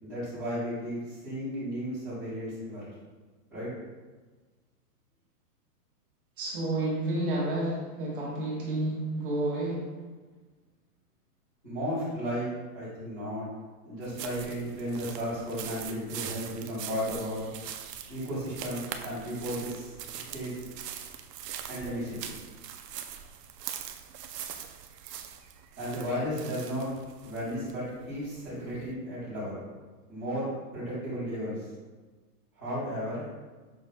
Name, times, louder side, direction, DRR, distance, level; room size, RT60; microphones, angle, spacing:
voice 1, 0.0-2.9 3.5-3.7 11.6-12.5 12.7-13.4 13.8-17.5 18.1-20.6 21.7-22.3 25.8-26.9 27.2-29.6 30.1-30.5 30.7-31.7 32.5-33.2, equal, 5° left, -25 dB, 0.5 m, -34 dB
voice 2, 6.4-9.9, right 1 dB, 35° right, -4 dB, 1.0 m, -30 dB
sound 1, 14.0-28.9, right 9 dB, 80° right, 0.6 m, -42 dB
6.0 x 3.9 x 2.2 m, 1.3 s
hypercardioid pair, 180°, 48 cm